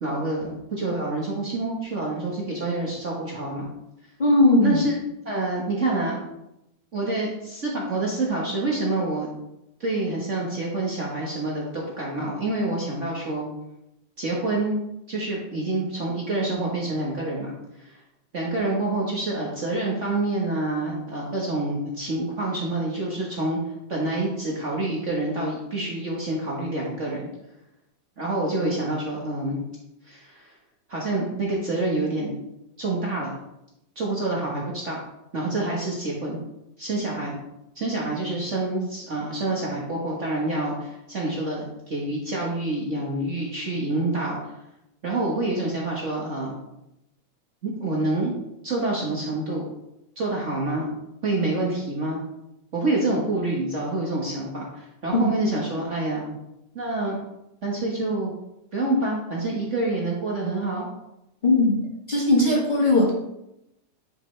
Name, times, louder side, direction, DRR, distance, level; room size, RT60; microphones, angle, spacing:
voice 1, 0.0-3.7 4.6-4.9 5.2-6.2 6.9-9.3 9.8-13.5 14.2-14.8 15.1-17.9 18.3-23.6 23.9-27.3 28.2-29.6 30.1-30.5 30.9-32.4 32.8-33.4 33.9-35.0 35.3-36.4 36.8-37.4 37.7-44.5 45.0-46.6 47.6-48.3 48.6-49.7 50.2-50.9 51.2-52.2 52.7-56.3 56.7-57.2 57.6-58.3 58.7-60.9, right 2 dB, 70° right, -3 dB, 0.6 m, -27 dB
voice 2, 4.2-4.8 55.1-55.3 61.4-61.8 62.1-63.1, left 2 dB, 30° left, -4 dB, 0.8 m, -18 dB
10.5 x 5.2 x 3.3 m, 0.86 s
omnidirectional pair, 3.5 m